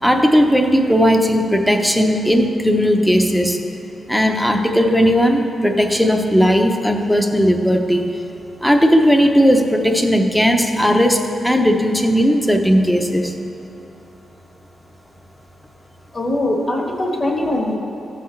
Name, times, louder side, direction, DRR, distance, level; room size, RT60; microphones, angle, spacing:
voice 1, 0.0-3.6 4.1-8.1 8.6-13.3, equal, 5° left, 4 dB, 0.7 m, -16 dB
voice 2, 16.1-17.7, left 1 dB, 40° left, -1 dB, 1.3 m, -21 dB
15.0 x 5.8 x 3.2 m, 2.8 s
cardioid pair, 115°, 0 cm